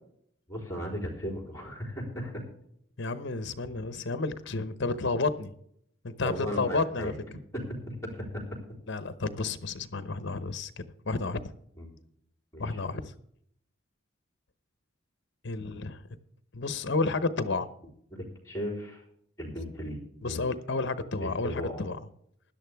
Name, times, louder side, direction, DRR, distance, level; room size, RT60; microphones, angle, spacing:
voice 1, 0.5-2.3 6.2-7.1 7.5-8.4 11.8-11.9 12.5-12.8 18.1-19.0 19.4-20.4 21.2-21.8, equal, 15° left, 2 dB, 3.8 m, -36 dB
voice 2, 3.0-5.5 6.0-7.1 8.9-11.5 12.6-13.1 15.4-16.0 16.5-17.7 20.2-22.0, left 3 dB, 60° left, 13 dB, 0.9 m, -31 dB
16.0 x 11.5 x 3.5 m, 0.70 s
head